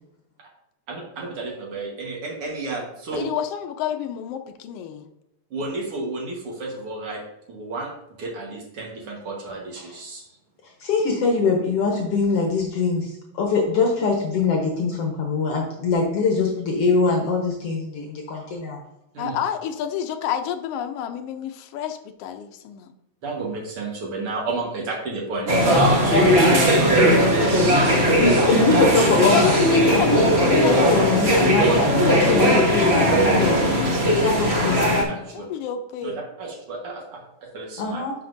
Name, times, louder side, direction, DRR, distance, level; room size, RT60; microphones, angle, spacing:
voice 1, 0.9-3.3 5.5-7.2 7.5-7.9 8.2-10.3 12.9-13.0 19.1-19.4 23.2-27.9 31.6-32.1 35.0-35.5 36.0-36.1 36.4-38.0, right 3 dB, 55° right, 0 dB, 2.1 m, -31 dB
voice 2, 3.2-5.1 19.2-22.9 29.3-31.6 35.3-36.2, left 9 dB, 85° left, 7 dB, 1.3 m, -29 dB
voice 3, 10.8-18.8 27.8-29.7 29.9-33.9 34.2-34.9 37.8-38.1, left 4 dB, 65° left, 0 dB, 1.9 m, -23 dB
sound 1, 25.5-35.0, equal, 75° right, 0.5 m, -18 dB
11.0 x 5.8 x 2.6 m, 0.83 s
omnidirectional pair, 3.3 m